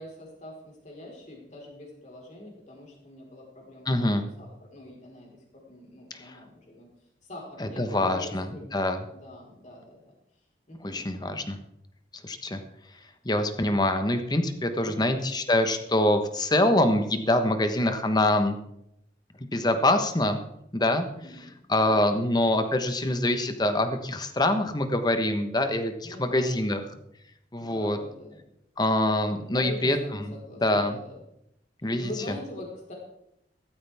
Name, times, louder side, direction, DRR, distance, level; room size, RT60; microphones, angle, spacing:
voice 1, 0.0-6.9 7.2-8.7 9.1-10.1 10.7-11.0 14.8-15.3 21.0-21.5 21.8-22.1 26.0-27.0 27.6-28.4 29.5-31.2 32.0-32.9, left 1 dB, 40° left, -1 dB, 4.4 m, -43 dB
voice 2, 3.9-4.2 6.2-6.4 7.6-8.4 8.7-9.0 10.9-11.6 12.2-12.6 13.2-18.6 19.5-20.4 20.7-21.0 21.7-26.8 27.5-28.0 28.8-30.0 30.6-31.0 31.8-32.1, left 1 dB, 25° left, 8 dB, 1.2 m, -24 dB
15.0 x 13.5 x 3.5 m, 0.77 s
head